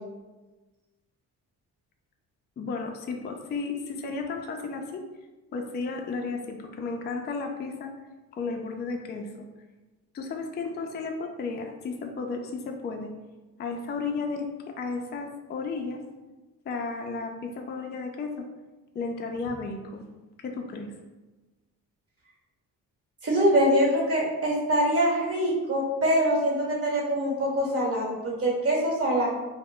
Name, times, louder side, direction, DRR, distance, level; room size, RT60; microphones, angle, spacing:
voice 1, 2.6-5.0 5.5-7.9 8.3-9.5 10.1-13.1 13.6-16.0 16.7-18.5 18.9-20.1 20.4-20.9, left 4 dB, 30° left, 3 dB, 0.3 m, -33 dB
voice 2, 23.2-29.3, equal, 35° right, -3 dB, 1.1 m, -24 dB
2.1 x 2.1 x 3.6 m, 1.2 s
supercardioid pair, 65°, 38 cm